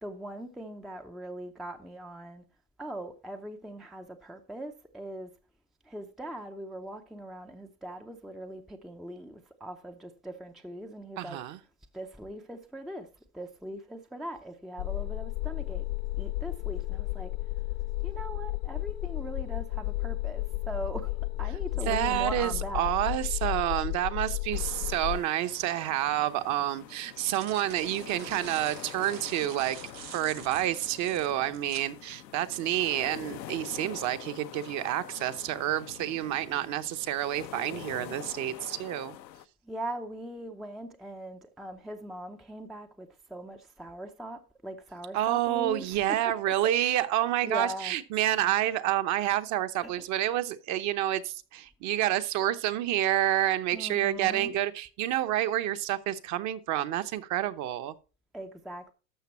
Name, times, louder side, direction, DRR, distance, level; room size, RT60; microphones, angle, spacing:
voice 1, 0.0-2.4 2.8-5.3 5.8-11.4 11.9-13.1 13.3-15.8 16.2-17.3 18.0-22.9 29.4-29.5 39.6-46.2 47.4-47.9 49.8-49.9 53.7-54.5 58.3-58.9, right 1 dB, ahead, 0.5 m, -40 dB
voice 2, 11.2-11.6 21.9-29.8 30.1-39.2 45.1-57.9, right 13 dB, 35° right, 0.9 m, -29 dB
sound 1, 14.8-25.2, left 19 dB, 55° left, 0.5 m, -33 dB
sound 2, 24.5-39.4, left 12 dB, 90° left, 0.9 m, -45 dB
sound 3, 25.9-26.0 26.9-31.9, right 10 dB, 85° right, 1.6 m, -46 dB
12.5 x 6.7 x 4.2 m
hypercardioid pair, 120°, 50 cm